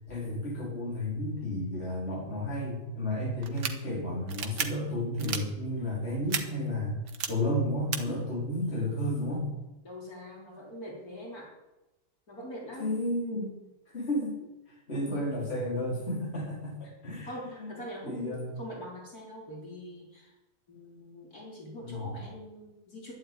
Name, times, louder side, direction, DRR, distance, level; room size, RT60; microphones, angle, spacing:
voice 1, 0.1-7.0 7.3-9.5 12.8-13.6 13.9-14.4 14.7-17.7 18.0-18.5 21.8-22.1, left 1 dB, 35° left, -3 dB, 4.2 m, -32 dB
sound 1, 3.4-3.7 4.3-4.7 5.2-5.4 6.3-6.4 7.1-7.3 7.9-8.0, right 7 dB, 90° right, 1.9 m, -31 dB
voice 2, 9.8-11.5 12.3-12.9 14.9-15.0 17.2-20.3 20.7-23.1, equal, 60° left, -2 dB, 4.7 m, -43 dB
12.0 x 11.0 x 9.1 m, 0.97 s
omnidirectional pair, 1.8 m